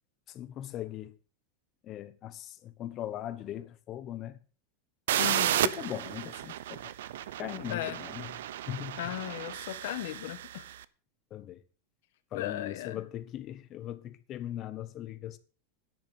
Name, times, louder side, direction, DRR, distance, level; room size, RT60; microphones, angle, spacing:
voice 1, 0.3-1.2 1.8-4.4 5.2-6.9 7.4-9.0 11.3-11.6 12.3-15.4, left 12 dB, 30° left, 1.1 m, -40 dB
sound 1, 5.1-10.7, right 12 dB, 90° right, 0.7 m, -33 dB
voice 2, 5.2-5.6 7.7-8.0 9.0-10.7 12.3-13.0, left 13 dB, 70° left, 1.7 m, -36 dB
10.5 x 6.4 x 8.5 m
supercardioid pair, 165°, 0 cm